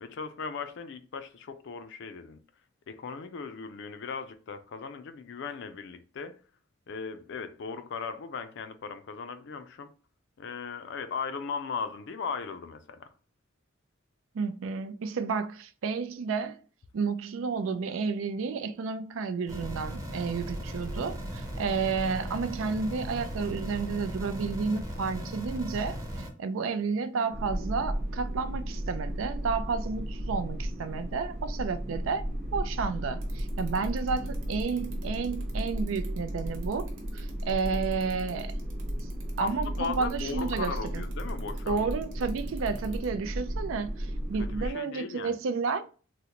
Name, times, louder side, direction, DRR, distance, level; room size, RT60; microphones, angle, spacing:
voice 1, 0.0-2.4 2.9-6.4 6.9-9.9 10.4-13.1 39.4-41.9 44.4-45.4, left 5 dB, 65° left, 0.4 m, -37 dB
voice 2, 14.3-16.6 16.9-32.3 32.5-38.5 39.4-41.0 41.7-45.8, right 5 dB, 90° right, 0.4 m, -31 dB
sound 1, 19.5-26.3, equal, 20° right, 0.7 m, -37 dB
sound 2, 27.3-44.7, equal, 40° right, 0.9 m, -34 dB
sound 3, 33.2-43.1, right 6 dB, 75° right, 1.0 m, -52 dB
3.8 x 2.1 x 2.8 m
head